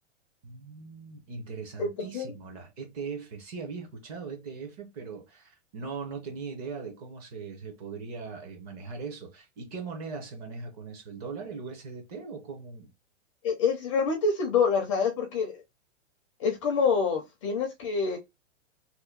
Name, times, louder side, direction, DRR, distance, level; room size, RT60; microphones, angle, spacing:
voice 1, 0.4-12.9, right 5 dB, 30° right, 1.0 m, -40 dB
voice 2, 1.8-2.3 13.4-15.6 16.4-18.2, left 5 dB, 25° left, 0.5 m, -26 dB
2.9 x 2.3 x 3.7 m
hypercardioid pair, 160°, 37 cm